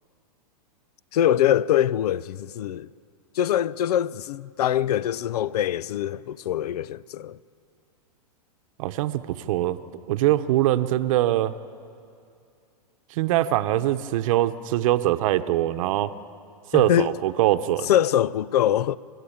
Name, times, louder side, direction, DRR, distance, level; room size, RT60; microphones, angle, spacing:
voice 1, 1.1-2.9 3.3-7.4 16.7-17.1 17.8-19.0, left 11 dB, 75° left, 0.5 m, -23 dB
voice 2, 8.8-9.8 10.1-11.5 13.1-16.1 16.7-17.9, right 14 dB, 55° right, 1.0 m, -22 dB
29.0 x 13.0 x 8.7 m
hypercardioid pair, 125°, 20 cm